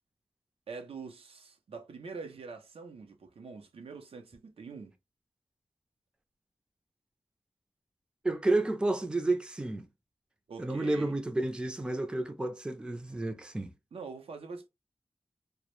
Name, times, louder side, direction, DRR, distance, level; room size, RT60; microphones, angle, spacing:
voice 1, 0.7-4.9 10.5-11.2 13.9-14.7, right 4 dB, 85° right, 0.5 m, -44 dB
voice 2, 8.2-9.8 10.6-13.7, right 2 dB, 10° right, 0.4 m, -31 dB
2.1 x 2.0 x 2.9 m
wide cardioid pair, 115°, 10 cm